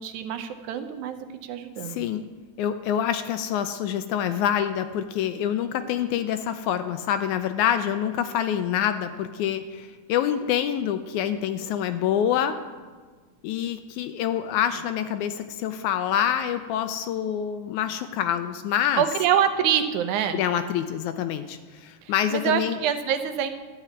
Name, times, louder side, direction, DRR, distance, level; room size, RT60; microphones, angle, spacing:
voice 1, 0.0-2.1 19.0-20.4 22.3-23.5, right 9 dB, 75° right, 8 dB, 2.0 m, -25 dB
voice 2, 1.8-2.2 2.6-12.6 13.4-19.0 20.3-22.8, left 9 dB, 80° left, 10 dB, 1.9 m, -26 dB
12.0 x 5.8 x 9.1 m, 1.4 s
omnidirectional pair, 3.7 m